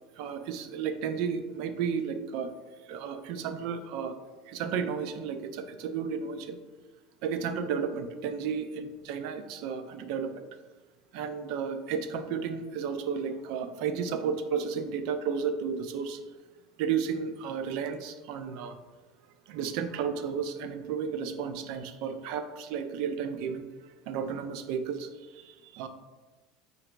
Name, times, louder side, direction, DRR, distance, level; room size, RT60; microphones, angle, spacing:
voice 1, 0.2-2.5 2.9-4.2 4.5-6.6 7.2-10.5 11.1-16.2 16.8-18.8 19.5-23.7 24.1-25.9, right 6 dB, 55° right, 9 dB, 0.3 m, -33 dB
3.9 x 2.9 x 3.3 m, 1.3 s
cardioid pair, 170°, 0 cm